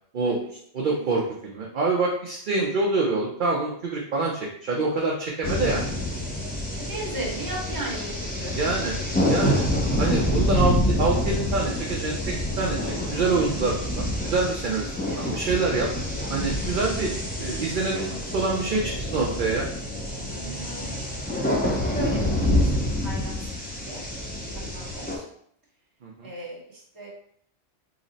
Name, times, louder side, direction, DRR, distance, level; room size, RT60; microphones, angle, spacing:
voice 1, 0.7-5.9 8.6-8.9 9.3-9.6 10.0-15.9 16.3-17.1 17.4-19.7 26.0-26.3, right 3 dB, 55° right, -2 dB, 0.6 m, -26 dB
sound 1, 5.4-25.2, left 1 dB, 15° left, 0.4 m, -27 dB
voice 2, 6.8-8.1 8.4-8.5 15.1-15.3 20.3-21.0 21.8-23.4 23.8-24.0 24.7-25.2 26.2-27.1, right 2 dB, 20° right, -4 dB, 0.8 m, -35 dB
3.9 x 2.0 x 3.8 m, 0.65 s
omnidirectional pair, 1.2 m